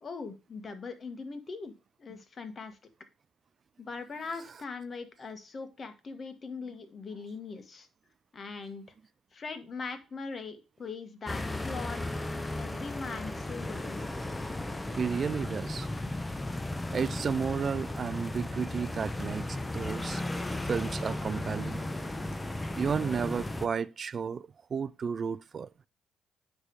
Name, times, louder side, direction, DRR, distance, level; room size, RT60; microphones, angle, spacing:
voice 1, 0.0-1.7 2.0-2.8 3.8-7.9 8.3-8.8 9.3-12.0 12.5-14.0, left 4 dB, 45° left, 1.6 m, -40 dB
sound 1, 11.3-23.7, left 2 dB, 15° left, 0.8 m, -35 dB
voice 2, 14.9-16.2 16.9-21.8 22.7-25.7, right 6 dB, 45° right, 0.3 m, -33 dB
9.7 x 3.5 x 4.6 m
supercardioid pair, 60°, 0 cm